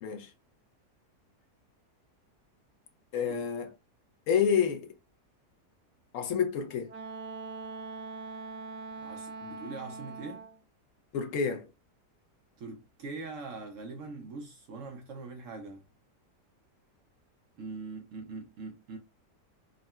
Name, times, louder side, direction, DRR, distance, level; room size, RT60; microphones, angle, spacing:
voice 1, 3.1-3.7 4.3-4.9 6.1-6.9 11.1-11.7, left 7 dB, 70° left, 0.8 m, -28 dB
Wind instrument woodwind instrument, 6.9-10.6, right 4 dB, 90° right, 1.3 m, -42 dB
voice 2, 9.0-10.5 12.6-15.8 17.6-19.0, right 3 dB, 70° right, 0.7 m, -42 dB
3.6 x 2.1 x 2.2 m
omnidirectional pair, 1.8 m